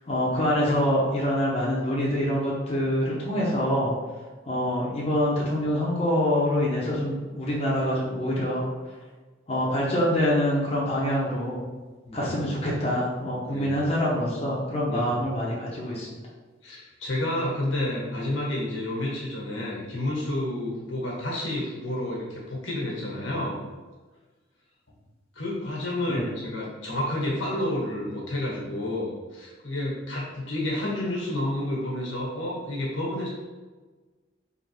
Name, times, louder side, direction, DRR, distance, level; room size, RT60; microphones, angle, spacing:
voice 1, 0.1-3.9 4.5-8.7 9.5-11.6 12.1-16.1 26.1-26.2, equal, 35° left, -5 dB, 0.8 m, -25 dB
voice 2, 12.1-12.4 13.5-13.7 14.9-15.2 16.6-23.6 25.3-33.3, left 1 dB, 85° left, -4 dB, 1.4 m, -30 dB
3.6 x 3.2 x 3.3 m, 1.3 s
head